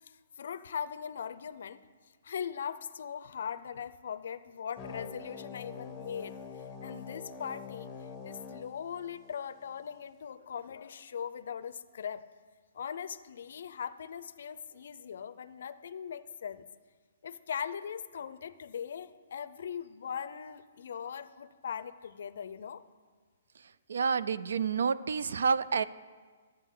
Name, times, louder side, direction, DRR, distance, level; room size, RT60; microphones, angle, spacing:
voice 1, 0.1-1.8 2.2-12.2 12.7-16.7 17.2-22.8, left 7 dB, 55° left, 14 dB, 0.5 m, -40 dB
sound 1, 4.8-9.8, left 6 dB, 15° left, 0.6 m, -45 dB
voice 2, 23.9-25.8, right 5 dB, 75° right, 17 dB, 0.4 m, -29 dB
12.5 x 8.6 x 3.8 m, 1.5 s
hypercardioid pair, 175°, 0 cm